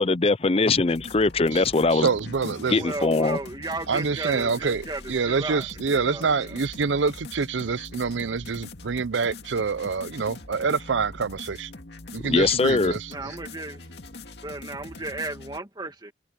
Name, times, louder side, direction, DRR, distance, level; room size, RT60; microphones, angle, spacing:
voice 1, 0.0-2.1 2.7-3.4 12.2-12.9, left 3 dB, 30° left, 0.6 m, -21 dB
sound 1, 0.7-15.6, left 2 dB, 65° left, 2.3 m, -43 dB
voice 2, 1.9-2.8 3.9-11.7 12.1-13.3, right 5 dB, 90° right, 0.6 m, -26 dB
voice 3, 2.7-6.6 13.1-13.8 14.4-16.1, right 2 dB, 25° right, 2.0 m, -34 dB
head